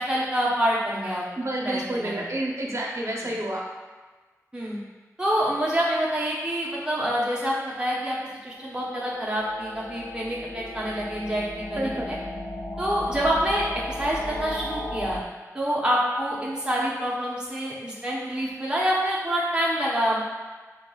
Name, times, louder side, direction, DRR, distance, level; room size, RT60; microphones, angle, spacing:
voice 1, 0.0-1.3 1.6-2.3 4.5-4.8 5.2-8.2 8.4-12.2 12.8-15.2 15.5-20.2, equal, 15° right, -6 dB, 1.0 m, -26 dB
voice 2, 1.4-3.6 11.7-12.1, right 1 dB, 50° right, -2 dB, 0.8 m, -29 dB
sound 1, 8.6-15.2, left 1 dB, 85° left, 0.5 m, -35 dB
5.7 x 2.9 x 2.3 m, 1.3 s
wide cardioid pair, 65°, 6 cm